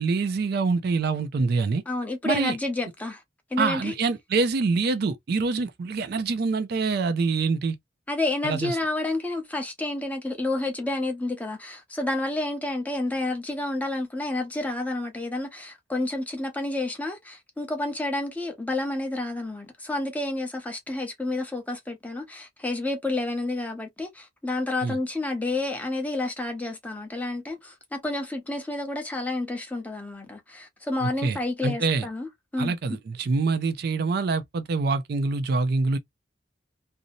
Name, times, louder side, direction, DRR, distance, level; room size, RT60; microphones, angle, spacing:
voice 1, 0.0-1.8 2.2-2.6 3.6-7.8 8.4-8.8 24.8-25.0 31.0-32.1 32.6-36.0, right 4 dB, 55° right, 0.4 m, -25 dB
voice 2, 1.9-3.2 3.5-3.9 8.1-32.8, left 2 dB, 10° left, 0.7 m, -30 dB
2.6 x 2.0 x 2.6 m
head